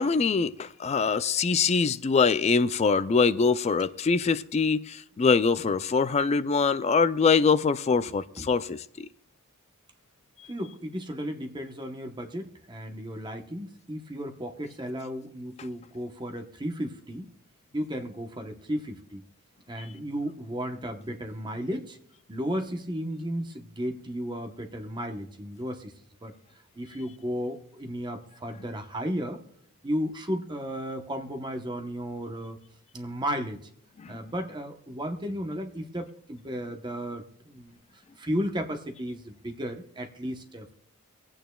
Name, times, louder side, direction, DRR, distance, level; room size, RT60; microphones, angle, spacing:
voice 1, 0.0-9.1 34.0-34.1, left 5 dB, 30° left, 0.3 m, -24 dB
voice 2, 7.9-8.5 10.4-17.3 17.7-19.2 19.7-22.0 22.3-25.9 26.2-26.3 26.8-29.4 29.8-32.6 32.9-33.6 34.1-40.7, equal, 20° right, 0.9 m, -34 dB
23.5 x 8.9 x 2.3 m
head